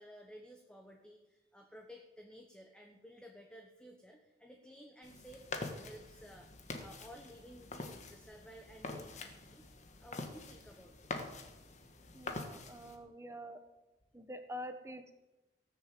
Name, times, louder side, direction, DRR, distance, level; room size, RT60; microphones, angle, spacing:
voice 1, 0.0-6.5 6.8-9.6 10.0-11.3, equal, 5° left, 2 dB, 1.2 m, -55 dB
sound 1, 5.0-13.0, left 2 dB, 40° left, 1.6 m, -46 dB
voice 2, 12.1-13.6 14.1-15.2, equal, 15° right, 8 dB, 1.1 m, -46 dB
18.0 x 7.3 x 7.7 m, 1.1 s
head